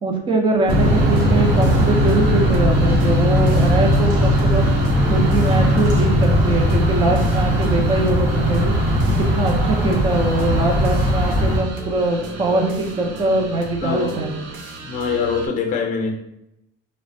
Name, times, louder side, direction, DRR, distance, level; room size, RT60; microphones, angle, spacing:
voice 1, 0.0-4.7 5.1-8.7 9.2-14.3, right 2 dB, 25° right, 1 dB, 0.4 m, -22 dB
sound 1, 0.7-11.6, equal, 60° right, 0.9 m, -18 dB
sound 2, 0.7-15.5, right 4 dB, 80° right, 0.5 m, -35 dB
voice 2, 13.8-14.2 14.8-16.1, left 5 dB, 45° left, 2 dB, 0.6 m, -23 dB
3.1 x 2.0 x 2.6 m, 0.82 s
cardioid pair, 135°, 19 cm